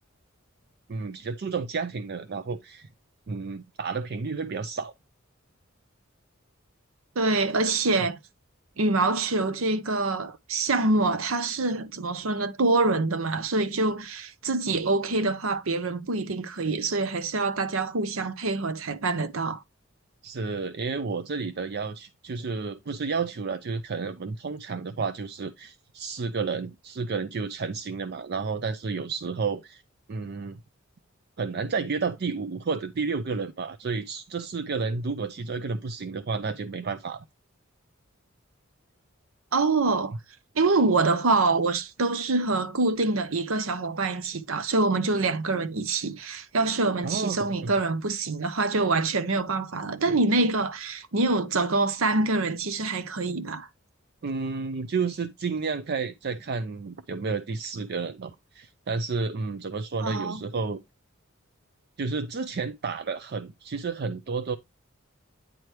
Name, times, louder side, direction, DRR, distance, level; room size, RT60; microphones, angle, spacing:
voice 1, 0.9-2.9 3.3-4.9 20.2-29.8 30.1-30.6 31.4-37.2 47.0-47.7 50.1-50.4 54.2-60.8 62.0-64.6, right 4 dB, 50° right, 0.5 m, -31 dB
voice 2, 7.2-8.2 8.8-19.6 39.5-40.1 40.6-53.7 60.0-60.4, right 3 dB, 80° right, 0.8 m, -25 dB
9.4 x 4.5 x 3.2 m
head